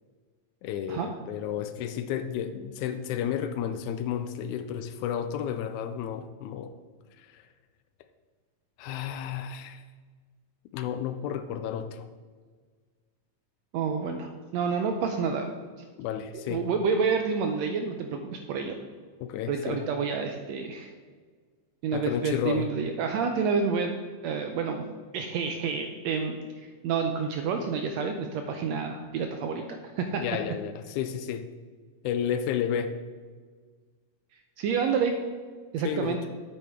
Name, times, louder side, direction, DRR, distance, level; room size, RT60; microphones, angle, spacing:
voice 1, 0.6-6.7 7.2-7.4 8.8-9.8 10.7-12.1 16.0-16.6 19.2-19.8 21.9-22.7 30.1-31.5 32.0-32.9 35.8-36.2, left 9 dB, 80° left, 10 dB, 1.8 m, -32 dB
voice 2, 13.7-15.5 16.5-18.7 19.5-20.9 21.8-23.9 24.2-24.8 25.1-29.6 30.0-30.2 34.6-35.2 35.7-36.3, right 5 dB, 80° right, 5 dB, 1.6 m, -29 dB
8.5 x 8.3 x 3.5 m, 1.6 s
omnidirectional pair, 3.6 m